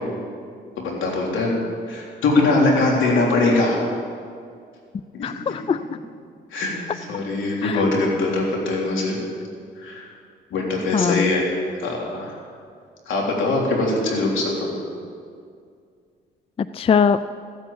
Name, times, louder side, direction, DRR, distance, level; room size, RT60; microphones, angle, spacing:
voice 1, 0.8-1.5 1.9-3.8 5.1-5.3 6.5-6.7 7.1-9.2 9.8-10.0 10.5-12.4 13.1-14.7, left 2 dB, 75° left, -2 dB, 3.5 m, -22 dB
voice 2, 5.2-5.8 7.6-7.8 10.9-11.3 16.6-17.2, left 6 dB, 30° left, 14 dB, 0.4 m, -21 dB
14.5 x 8.5 x 8.5 m, 2.2 s
cardioid pair, 90°, 20 cm